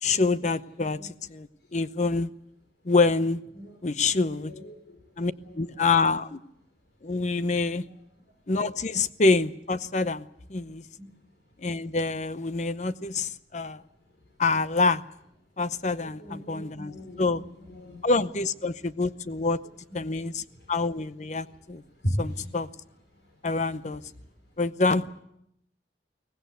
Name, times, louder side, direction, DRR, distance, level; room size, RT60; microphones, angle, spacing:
voice 1, 0.0-2.3 2.8-3.4 3.8-4.5 5.2-6.4 7.0-7.8 8.5-10.2 10.5-10.8 11.6-13.8 14.4-15.0 15.6-16.9 17.2-17.4 18.0-19.6 19.9-21.8 22.2-22.7 23.4-24.0 24.6-25.1, left 3 dB, 40° left, 14 dB, 0.8 m, -26 dB
voice 2, 0.8-1.1 3.5-3.8 4.4-5.0 5.4-5.9 7.8-7.9 11.0-11.1 14.1-14.2 16.0-18.1 19.9-20.0 20.5-20.7 21.9-22.5 23.1-23.4 24.2-24.3, equal, 75° left, 2 dB, 5.3 m, -37 dB
23.0 x 18.5 x 8.1 m, 0.77 s
head